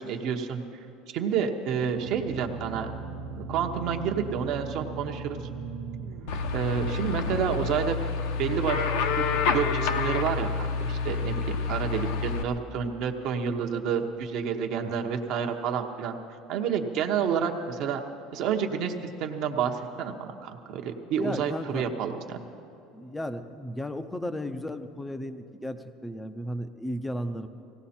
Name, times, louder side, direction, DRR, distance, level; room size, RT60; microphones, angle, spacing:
voice 1, 0.0-2.9 3.4-5.4 6.5-8.0 8.4-9.2 9.5-16.2 16.5-18.0 18.3-18.9 19.2-22.4, right 7 dB, 45° right, 3 dB, 0.9 m, -29 dB
sound 1, 1.8-7.4, right 4 dB, 90° right, 0.8 m, -38 dB
sound 2, 6.3-12.4, left 5 dB, 70° left, 1.0 m, -28 dB
voice 2, 21.1-21.8 22.9-27.5, equal, 5° left, 10 dB, 0.6 m, -35 dB
18.5 x 17.0 x 4.3 m, 2.8 s
cardioid pair, 180°, 0 cm